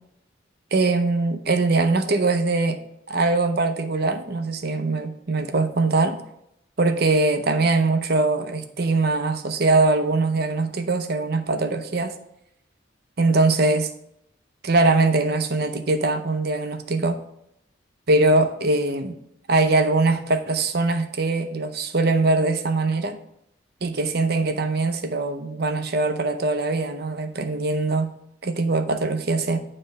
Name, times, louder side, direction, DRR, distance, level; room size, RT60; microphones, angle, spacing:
voice 1, 0.7-2.8 3.1-6.2 6.8-12.1 13.2-13.9 14.6-17.2 18.1-19.2 19.5-23.2 23.8-28.1 28.4-29.6, right 3 dB, 55° right, 7 dB, 0.7 m, -22 dB
9.3 x 3.3 x 6.5 m, 0.77 s
head